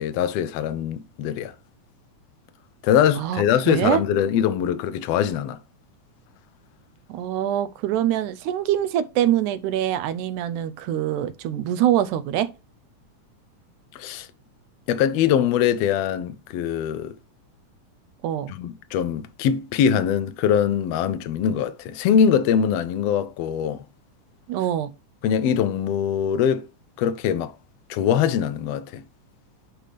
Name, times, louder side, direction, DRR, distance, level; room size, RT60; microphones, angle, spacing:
voice 1, 0.0-1.5 2.8-5.6 13.9-14.3 14.9-17.1 18.5-23.8 25.2-26.7 27.0-27.5 27.9-29.0, left 8 dB, 80° left, 1.4 m, -22 dB
voice 2, 3.2-4.0 7.1-12.5 18.2-18.5 24.5-24.9, right 11 dB, 80° right, 2.1 m, -24 dB
10.0 x 3.4 x 5.0 m
omnidirectional pair, 3.6 m